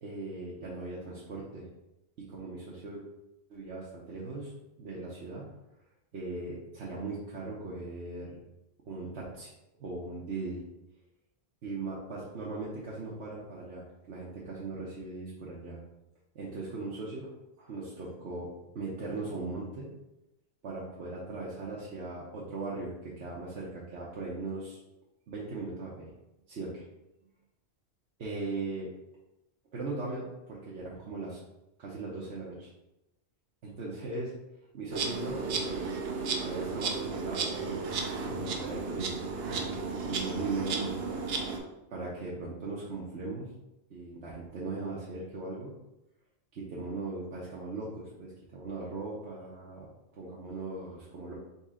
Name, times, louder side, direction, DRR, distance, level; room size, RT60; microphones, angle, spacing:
voice 1, 0.0-1.6 2.2-3.0 3.5-4.5 4.8-5.5 6.1-8.4 8.9-9.5 9.8-10.6 11.6-15.8 16.3-17.3 17.6-18.5 18.7-19.9 20.6-24.8 25.3-26.2 26.5-26.8 28.2-28.9 29.7-31.4 31.8-32.7 33.6-34.3 34.7-35.9 36.4-38.0 38.3-39.5 40.1-40.9 41.9-43.5 43.9-45.7 46.5-51.3, right 3 dB, 85° right, -5 dB, 1.1 m, -39 dB
Insect, 34.9-41.6, right 4 dB, 70° right, 0.9 m, -34 dB
4.3 x 3.2 x 3.7 m, 0.92 s
omnidirectional pair, 1.1 m